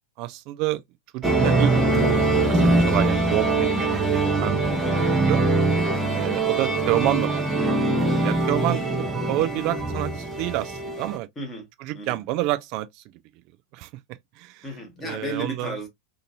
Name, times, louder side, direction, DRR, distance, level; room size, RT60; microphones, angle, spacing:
voice 1, 0.2-0.8 1.1-2.2 2.5-4.7 5.3-5.4 6.1-7.4 8.2-8.8 9.3-11.3 11.8-12.9 13.7-13.9 14.4-14.6 15.0-15.7, right 16 dB, 45° right, 0.4 m, -28 dB
sound 1, 1.2-11.2, right 2 dB, 15° right, 0.8 m, -22 dB
voice 2, 8.7-9.3 11.4-11.7 11.9-12.2 14.6-15.9, right 1 dB, 20° left, 1.3 m, -34 dB
2.8 x 2.6 x 2.5 m
figure-of-eight pair, 90°, 0 cm